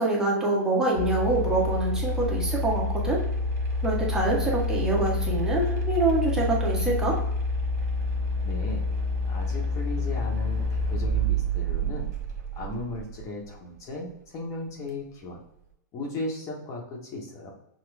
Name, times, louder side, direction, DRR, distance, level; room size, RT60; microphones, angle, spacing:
voice 1, 0.0-3.2 3.8-7.2, right 2 dB, 5° right, -4 dB, 1.3 m, -25 dB
sound 1, 0.9-13.2, left 1 dB, 55° right, 1.3 m, -28 dB
voice 2, 8.4-8.8 9.3-12.1 12.5-15.4 15.9-17.5, left 2 dB, 30° left, 0 dB, 1.1 m, -36 dB
6.0 x 2.3 x 3.3 m, 0.80 s
hypercardioid pair, 130°, 10 cm